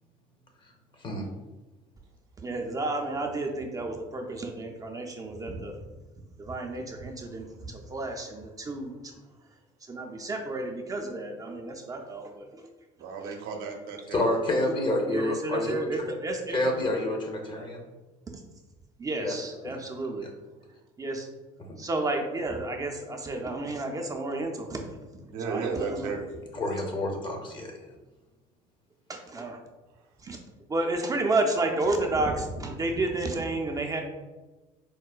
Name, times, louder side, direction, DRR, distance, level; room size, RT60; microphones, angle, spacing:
voice 1, 2.4-5.7 6.4-9.1 9.9-12.6 13.2-13.3 15.1-16.8 19.0-20.3 21.0-21.3 21.8-24.8 25.5-26.1 29.1-29.6 30.2-30.4 30.7-34.0, right 2 dB, 25° right, 2 dB, 0.4 m, -31 dB
voice 2, 13.0-14.3 20.6-20.8 25.3-26.5 29.9-30.0, right 4 dB, 75° right, 2 dB, 0.6 m, -34 dB
voice 3, 14.1-16.1 16.5-17.9 19.2-19.3 19.6-19.8 20.2-20.3 26.5-27.8, left 1 dB, 30° left, 2 dB, 0.7 m, -29 dB
4.5 x 2.1 x 2.3 m, 1.2 s
supercardioid pair, 95°, 16 cm